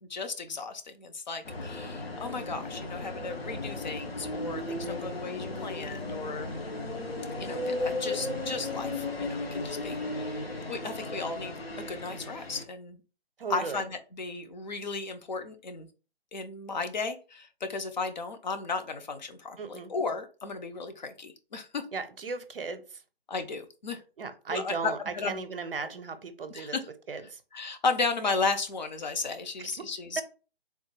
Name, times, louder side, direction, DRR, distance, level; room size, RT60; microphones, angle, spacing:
voice 1, 0.0-6.5 7.4-13.0 13.5-15.9 16.3-21.8 23.3-24.0 24.5-25.4 25.8-25.9 26.5-26.9 27.5-30.2, left 4 dB, 45° left, 7 dB, 0.5 m, -34 dB
sound 1, 1.4-12.6, left 2 dB, 70° left, 0.8 m, -35 dB
voice 2, 13.4-13.8 19.6-19.9 21.9-22.8 24.2-26.8 27.1-27.4 29.6-29.7 30.2-30.3, right 5 dB, 65° right, 10 dB, 0.6 m, -36 dB
3.5 x 2.2 x 3.0 m, 0.35 s
figure-of-eight pair, 140°, 31 cm